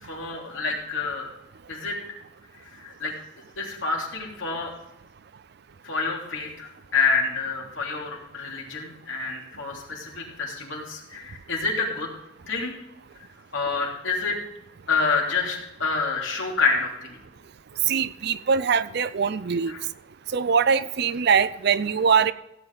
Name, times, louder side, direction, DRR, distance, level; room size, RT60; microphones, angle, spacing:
voice 1, 0.0-1.3 1.7-2.0 2.8-3.1 3.6-4.7 5.8-12.1 12.5-12.7 13.5-14.4 14.9-17.2 19.7-19.8, left 4 dB, 85° left, -1 dB, 3.1 m, -28 dB
voice 2, 17.9-19.7 20.3-22.3, right 6 dB, 55° right, 16 dB, 0.5 m, -22 dB
15.5 x 8.5 x 4.0 m, 0.90 s
head